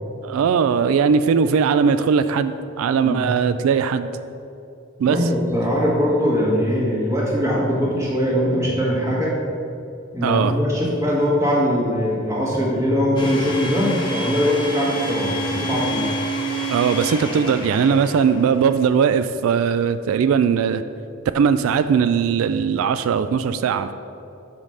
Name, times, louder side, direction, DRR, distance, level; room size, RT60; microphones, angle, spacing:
voice 1, 0.2-4.1 5.0-5.2 10.2-10.5 16.7-20.8 21.3-23.9, right 6 dB, 80° right, 11 dB, 0.3 m, -19 dB
voice 2, 5.0-9.3 10.1-16.1, equal, 15° right, -5 dB, 1.5 m, -21 dB
Domestic sounds home sounds, 13.2-18.7, right 1 dB, 20° left, 0.9 m, -28 dB
5.6 x 5.1 x 6.3 m, 2.6 s
head